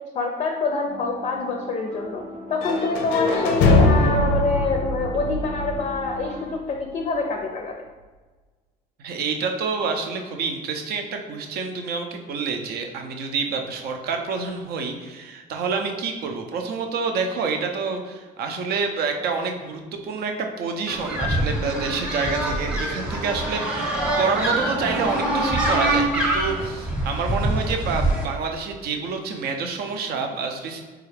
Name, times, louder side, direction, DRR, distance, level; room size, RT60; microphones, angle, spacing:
voice 1, 0.1-7.7, left 3 dB, 35° left, 2 dB, 0.4 m, -26 dB
sound 1, 0.9-6.5, equal, 35° right, 0.8 m, -38 dB
sound 2, 2.6-6.5, left 2 dB, 90° left, 0.5 m, -22 dB
voice 2, 9.0-30.8, right 5 dB, 65° right, 4 dB, 0.6 m, -28 dB
sound 3, 20.9-28.2, right 1 dB, 5° right, 0.8 m, -24 dB
4.0 x 2.4 x 3.2 m, 1.3 s
cardioid pair, 110°, 17 cm